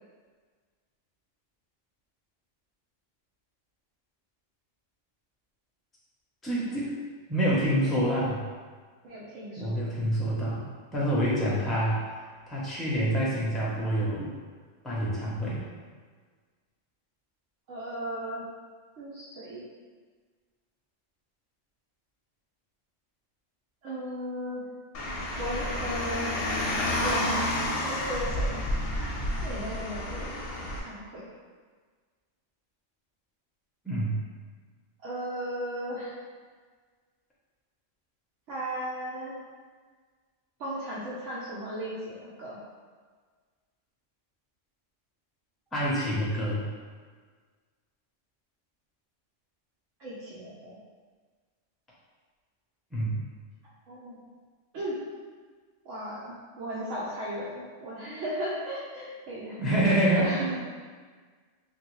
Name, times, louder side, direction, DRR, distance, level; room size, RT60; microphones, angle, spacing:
voice 1, 6.4-6.9 7.3-8.4 9.6-10.6 10.9-12.2 12.5-14.3 14.8-15.6 33.8-34.2 45.7-46.7 52.9-53.2 59.6-60.4, right 1 dB, ahead, -7 dB, 0.4 m, -27 dB
voice 2, 9.0-9.8 17.7-18.4 19.0-19.6 23.8-24.6 25.4-26.4 27.0-27.6 27.8-28.6 29.4-31.3 35.0-36.1 38.5-39.4 40.6-42.6 50.0-50.8 53.9-54.2 54.7-54.9 55.8-59.6 60.1-60.5, right 1 dB, 80° right, -9 dB, 1.0 m, -36 dB
Car, 24.9-30.8, left 1 dB, 60° left, 0.7 m, -30 dB
3.3 x 2.4 x 3.0 m, 1.5 s
omnidirectional pair, 1.3 m